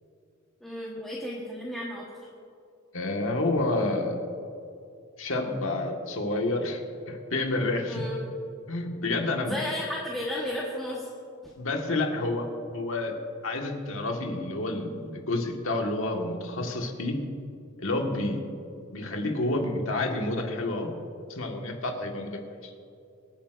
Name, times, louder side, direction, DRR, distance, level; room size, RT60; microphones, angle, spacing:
voice 1, 0.6-2.3 7.9-8.2 9.4-11.1 11.4-11.5, left 1 dB, ahead, -5 dB, 1.2 m, -33 dB
voice 2, 2.9-4.3 5.2-6.8 7.1-8.0 8.7-9.6 11.6-13.1 13.4-17.2 17.8-18.4 18.9-20.9 21.3-22.7, left 2 dB, 70° left, 2 dB, 1.5 m, -29 dB
25.0 x 9.0 x 2.5 m, 2.5 s
head